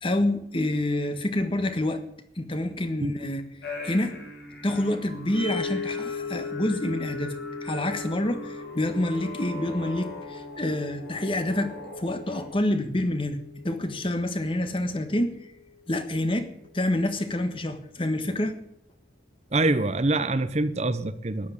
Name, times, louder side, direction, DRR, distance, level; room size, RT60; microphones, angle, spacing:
voice 1, 0.0-2.0 2.4-3.4 3.8-4.1 4.6-7.3 7.6-11.7 12.0-13.4 13.6-15.4 15.9-16.5 16.7-18.6, left 1 dB, 30° left, 8 dB, 1.5 m, -27 dB
sound 1, 3.6-12.4, equal, 65° left, 5.6 m, -40 dB
sound 2, 5.3-15.6, left 5 dB, 90° left, 6.7 m, -39 dB
voice 2, 19.5-21.5, right 2 dB, 40° right, 13 dB, 0.8 m, -25 dB
14.0 x 10.5 x 8.6 m, 0.76 s
head